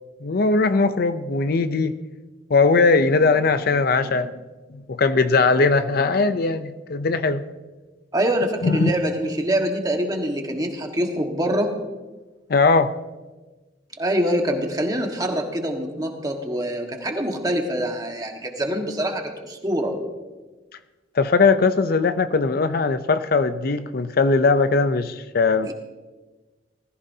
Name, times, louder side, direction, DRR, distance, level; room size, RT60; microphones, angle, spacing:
voice 1, 0.2-2.0 2.5-4.3 4.9-7.5 8.6-8.9 12.5-12.9 21.2-25.7, left 4 dB, 55° left, 11 dB, 0.6 m, -19 dB
voice 2, 8.1-11.7 14.0-20.0 25.7-25.8, right 1 dB, 20° right, 2 dB, 1.5 m, -25 dB
20.0 x 14.5 x 2.8 m, 1.2 s
head